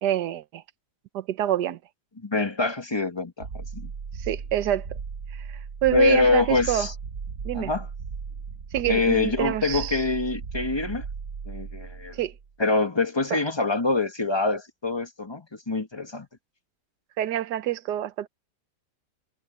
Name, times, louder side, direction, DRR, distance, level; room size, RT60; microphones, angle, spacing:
voice 1, 0.0-0.6 1.1-1.8 4.2-4.9 5.3-5.4 5.8-6.9 7.4-7.7 8.7-10.0 12.1-12.3 13.3-13.4 17.2-18.3, right 12 dB, 75° right, 1.5 m, -26 dB
voice 2, 2.2-3.9 5.9-6.9 7.5-7.9 8.9-11.0 11.5-12.1 12.6-16.3, left 3 dB, 15° left, 1.4 m, -25 dB
sound 1, 3.4-12.5, right 5 dB, 50° right, 1.4 m, -36 dB
omnidirectional pair, 1.8 m